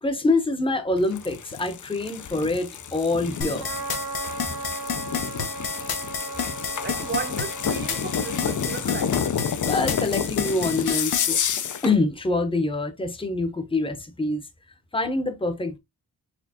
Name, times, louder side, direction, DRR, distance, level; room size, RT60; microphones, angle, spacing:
voice 1, 0.0-3.7 9.7-11.4 11.8-14.5 14.9-15.8, left 2 dB, 15° left, 0.7 m, -25 dB
sound 1, 1.0-11.9, left 7 dB, 55° left, 0.5 m, -30 dB
sound 2, 3.4-11.3, left 6 dB, 70° left, 0.9 m, -29 dB
Trumpet, 3.6-9.8, right 4 dB, 85° right, 1.2 m, -37 dB
voice 2, 6.8-9.4, right 6 dB, 30° right, 0.5 m, -34 dB
4.3 x 3.4 x 2.7 m
wide cardioid pair, 135°, 37 cm